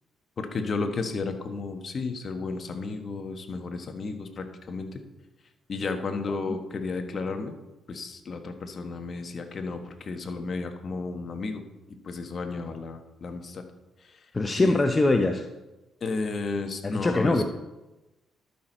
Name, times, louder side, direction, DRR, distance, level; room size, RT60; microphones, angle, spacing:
voice 1, 0.4-5.0 5.7-7.5 7.9-11.6 12.0-13.6 14.0-14.2 14.6-14.8 16.0-17.4, left 4 dB, 45° left, 6 dB, 1.1 m, -33 dB
voice 2, 14.3-15.4 16.8-17.4, left 2 dB, 25° left, 5 dB, 0.6 m, -22 dB
12.0 x 6.0 x 4.4 m, 1.0 s
cardioid pair, 90°, 0 cm